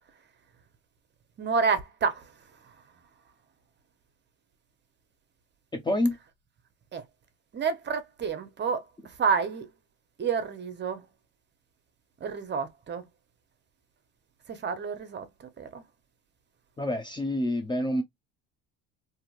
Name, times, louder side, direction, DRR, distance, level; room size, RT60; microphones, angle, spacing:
voice 1, 1.4-2.3 2.7-2.8 6.9-7.0 7.5-9.7 10.2-11.1 12.2-13.1 14.5-15.8, right 5 dB, 30° right, 0.8 m, -29 dB
voice 2, 5.7-6.2 16.8-18.0, left 1 dB, 15° left, 0.6 m, -27 dB
2.7 x 2.7 x 2.4 m
hypercardioid pair, 80°, 34 cm